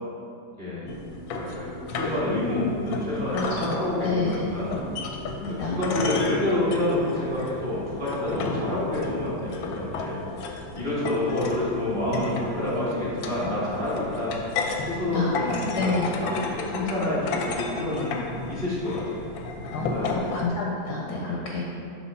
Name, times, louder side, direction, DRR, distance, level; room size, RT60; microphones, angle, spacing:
voice 1, 0.6-0.9 1.3-4.8 5.5-14.3 14.8-18.1 18.5-19.2 19.5-20.2 21.1-21.5, left 1 dB, 25° right, -9 dB, 1.7 m, -28 dB
sound 1, 0.9-20.5, left 3 dB, 90° left, 1.4 m, -34 dB
voice 2, 3.3-3.7 4.0-4.4 5.4-6.1 15.1-16.1 19.7-21.6, left 3 dB, 70° left, -2 dB, 1.0 m, -29 dB
7.2 x 3.3 x 5.3 m, 2.6 s
omnidirectional pair, 2.2 m